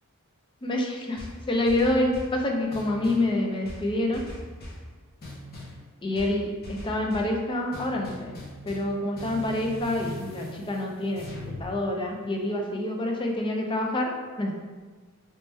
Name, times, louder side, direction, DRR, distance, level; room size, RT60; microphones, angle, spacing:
voice 1, 0.6-4.2 6.0-8.3 8.6-14.1 14.4-14.5, left 1 dB, 20° left, 1 dB, 0.4 m, -27 dB
sound 1, 1.2-2.4 2.7-3.3 3.6-4.9 5.2-5.8 6.1-7.3 7.7-11.7, left 1 dB, 45° left, 0.7 m, -40 dB
3.1 x 2.9 x 3.2 m, 1.4 s
head